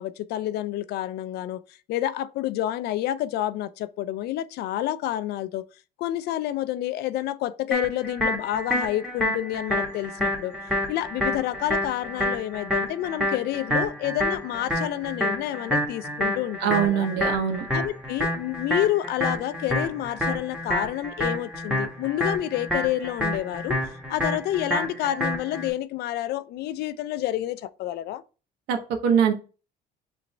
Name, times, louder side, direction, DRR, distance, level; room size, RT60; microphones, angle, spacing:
voice 1, 0.0-1.6 1.9-5.7 6.0-10.6 10.9-17.1 17.7-23.8 24.1-28.2, left 13 dB, 75° left, 0.4 m, -29 dB
sound 1, 7.7-25.7, left 1 dB, 5° right, 1.3 m, -28 dB
voice 2, 16.6-17.7 28.7-29.3, right 8 dB, 85° right, 0.9 m, -23 dB
5.1 x 3.2 x 3.2 m
cardioid pair, 110°, 17 cm